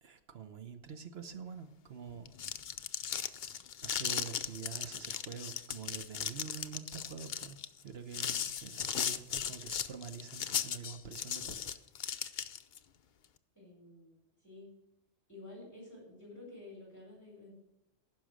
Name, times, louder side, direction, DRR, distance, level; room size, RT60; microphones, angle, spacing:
voice 1, 0.0-2.3 3.8-11.8, right 7 dB, 60° right, 1.1 m, -46 dB
sound 1, 2.2-12.8, left 8 dB, 55° left, 0.6 m, -37 dB
voice 2, 13.5-14.7 15.3-17.5, left 2 dB, 15° left, 4.7 m, -51 dB
15.0 x 6.2 x 6.2 m
omnidirectional pair, 1.3 m